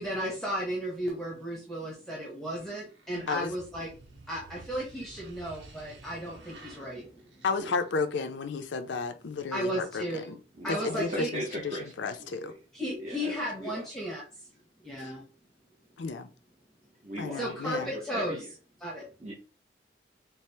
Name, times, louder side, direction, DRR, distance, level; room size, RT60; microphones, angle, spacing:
voice 1, 0.0-3.9 4.3-7.2 9.5-10.2 10.6-11.3 12.7-14.2 14.8-15.2 17.4-18.4 18.8-19.3, equal, ahead, 0.7 m, -34 dB
sound 1, 2.9-8.2, right 3 dB, 90° right, 0.9 m, -52 dB
voice 2, 7.4-10.4 10.7-12.5 15.0-15.1 16.0-16.3 17.2-17.9, left 4 dB, 80° left, 0.5 m, -33 dB
voice 3, 10.6-12.6 13.0-13.3 13.6-13.9 17.0-18.5 19.2-19.3, equal, 40° right, 0.7 m, -39 dB
4.2 x 2.0 x 3.2 m
head